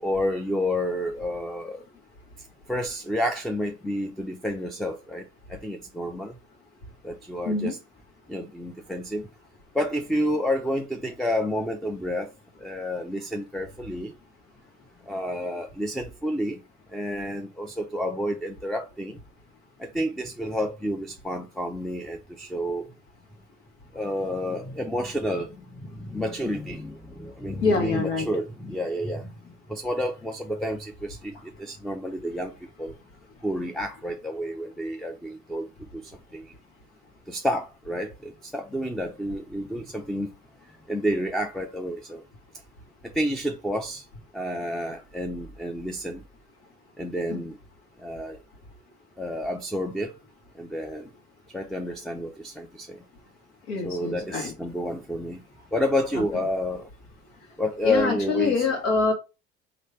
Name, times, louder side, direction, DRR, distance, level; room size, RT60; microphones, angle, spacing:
voice 1, 0.0-1.8 2.7-6.4 7.0-7.8 8.3-9.3 9.7-12.3 12.6-14.1 15.0-16.6 16.9-19.2 19.8-22.9 23.9-32.9 33.4-36.5 37.3-40.3 40.9-42.2 43.0-44.0 44.3-46.2 47.0-47.6 48.0-48.4 49.2-50.2 50.5-51.1 51.5-53.0 53.8-55.4 55.7-56.9 57.6-58.7, equal, ahead, 0.5 m, -30 dB
voice 2, 27.6-28.3 47.3-47.4 53.7-54.5 56.3-56.4 57.8-59.1, left 4 dB, 75° left, 1.5 m, -25 dB
3.2 x 2.9 x 4.3 m
hypercardioid pair, 75°, 31 cm